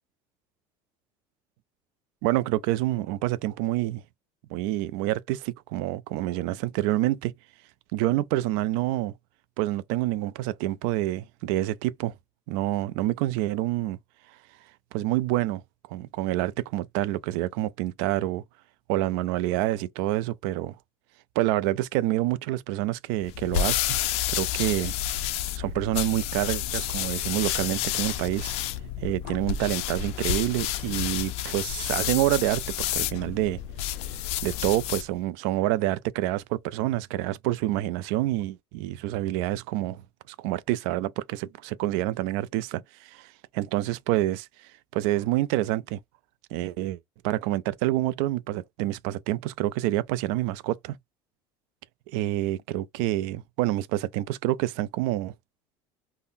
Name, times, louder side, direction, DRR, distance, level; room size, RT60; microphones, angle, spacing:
voice 1, 2.2-4.0 4.5-7.3 7.9-9.1 9.6-12.1 12.5-14.0 14.9-15.6 15.9-18.4 18.9-20.8 21.4-24.0 24.3-24.9 25.6-28.5 29.0-33.6 34.4-44.5 44.9-46.0 46.5-51.0 52.1-55.3, right 15 dB, 80° right, 0.4 m, -27 dB
sound 1, 23.2-35.1, left 11 dB, 65° left, 0.4 m, -30 dB
3.7 x 2.0 x 2.5 m
cardioid pair, 125°, 12 cm